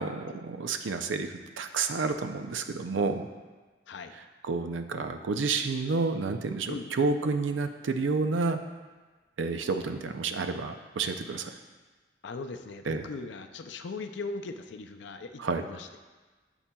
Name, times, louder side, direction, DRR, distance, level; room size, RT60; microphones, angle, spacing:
voice 1, 0.0-3.3 4.5-8.6 9.4-11.5 12.9-13.1 15.4-15.6, right 4 dB, 90° right, 7 dB, 0.5 m, -30 dB
voice 2, 3.9-4.2 6.7-6.9 12.2-15.9, left 3 dB, 75° left, 7 dB, 0.4 m, -39 dB
8.4 x 7.1 x 2.3 m, 1.3 s
head